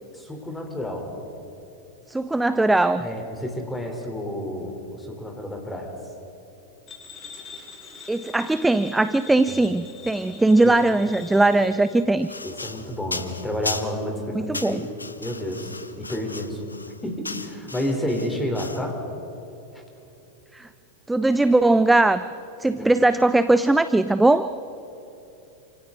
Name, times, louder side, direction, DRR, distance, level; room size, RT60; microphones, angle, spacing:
voice 1, 0.1-1.1 3.0-5.9 9.5-9.6 10.6-10.7 12.4-16.7 17.0-19.0 19.7-19.8 22.8-22.9, left 1 dB, 10° left, 3 dB, 3.8 m, -30 dB
voice 2, 2.1-3.1 8.1-12.3 14.4-14.9 20.5-20.7 21.1-22.3 22.6-24.5, right 2 dB, 5° right, 13 dB, 0.5 m, -20 dB
sound 1, 6.9-12.1, left 5 dB, 25° left, 4.3 m, -43 dB
sound 2, 12.2-14.1 14.5-18.9, left 3 dB, 80° left, 0.9 m, -36 dB
28.0 x 26.5 x 3.9 m, 3.0 s
figure-of-eight pair, 90°, 0 cm